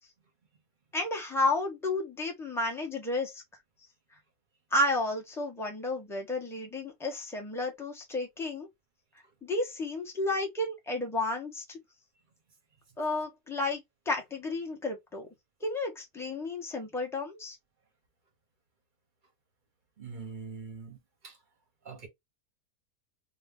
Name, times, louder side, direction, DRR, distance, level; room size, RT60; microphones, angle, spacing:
voice 1, 0.9-3.4 4.7-8.7 9.4-11.8 13.0-15.3 15.6-17.6, left 2 dB, ahead, 0.6 m, -32 dB
voice 2, 20.0-21.4 21.8-22.1, right 5 dB, 40° right, 0.8 m, -43 dB
2.9 x 2.2 x 3.6 m
omnidirectional pair, 1.6 m